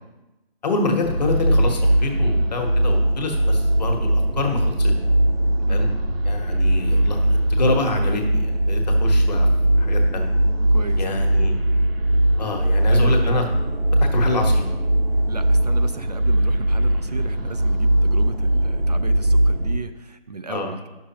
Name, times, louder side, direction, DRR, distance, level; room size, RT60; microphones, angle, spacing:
voice 1, 0.6-4.9 5.7-5.9 6.2-9.5 9.8-10.3 11.0-11.6 12.4-13.4 14.0-14.6 20.5-20.7, left 3 dB, 45° left, 3 dB, 1.3 m, -27 dB
sound 1, 1.0-19.7, right 1 dB, 75° right, 1.2 m, -20 dB
voice 2, 10.7-11.2 12.9-13.4 15.3-20.9, right 4 dB, 45° right, 9 dB, 0.4 m, -35 dB
9.8 x 6.6 x 2.9 m, 1.0 s
figure-of-eight pair, 160°, 30 cm